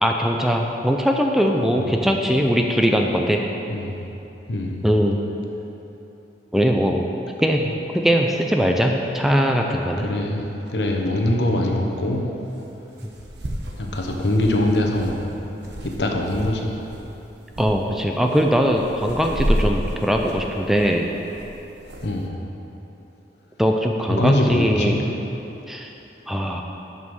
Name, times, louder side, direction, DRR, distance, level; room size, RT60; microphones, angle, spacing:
voice 1, 0.0-3.4 4.8-5.2 6.5-7.1 7.4-7.6 7.9-10.1 13.0-13.1 17.6-21.1 23.6-25.0 25.7-25.9 26.3-26.6, equal, ahead, 1 dB, 0.4 m, -20 dB
voice 2, 4.5-4.8 10.0-12.3 13.8-15.3 15.8-16.7 22.0-22.4 24.1-25.1, left 1 dB, 75° left, 1 dB, 1.0 m, -23 dB
sound 1, 10.7-10.8 12.6-12.7 13.0-16.5 16.8-17.1 17.5-17.7 18.2-22.1, equal, 75° right, 0.9 m, -30 dB
7.7 x 5.5 x 6.3 m, 3.0 s
head